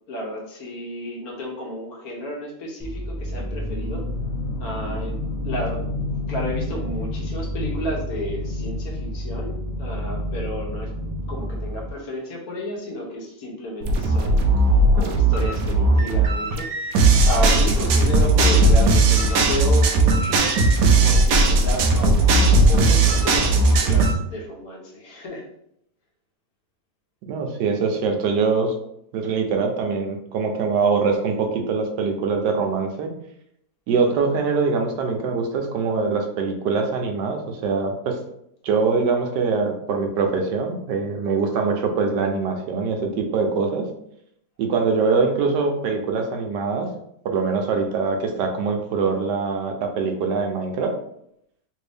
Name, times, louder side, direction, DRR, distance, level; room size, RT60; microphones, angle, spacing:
voice 1, 0.1-4.0 4.6-5.8 6.3-10.9 11.3-14.4 14.9-16.7 16.9-20.5 21.0-25.4, equal, 65° left, -2 dB, 1.3 m, -32 dB
sound 1, 2.8-11.9, left 1 dB, 20° right, 0.7 m, -29 dB
sound 2, 13.8-24.1, right 2 dB, 70° right, 1.0 m, -17 dB
voice 2, 27.3-28.7 29.1-33.1 33.9-38.2 38.6-43.9 44.6-46.9 47.2-50.9, right 4 dB, 90° right, 4 dB, 1.3 m, -23 dB
3.4 x 2.6 x 3.3 m, 0.75 s
omnidirectional pair, 1.8 m